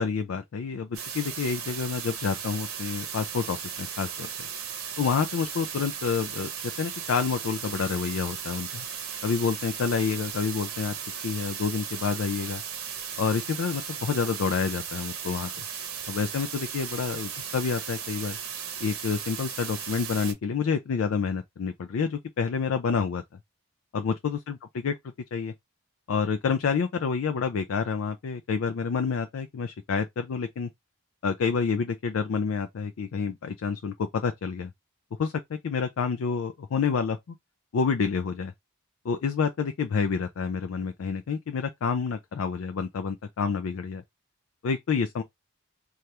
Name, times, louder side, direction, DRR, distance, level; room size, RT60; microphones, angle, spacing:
voice 1, 0.0-4.5 5.0-6.5 6.8-8.9 9.2-10.9 11.2-12.6 13.2-15.5 16.1-18.4 18.8-23.2 23.9-24.9 25.3-25.5 26.1-30.7 31.2-34.7 35.2-37.4 37.7-38.5 39.0-44.0 44.6-45.2, left 5 dB, 70° left, 0.4 m, -28 dB
sound 1, 0.9-20.3, right 7 dB, 75° right, 0.8 m, -36 dB
2.8 x 2.4 x 3.2 m
head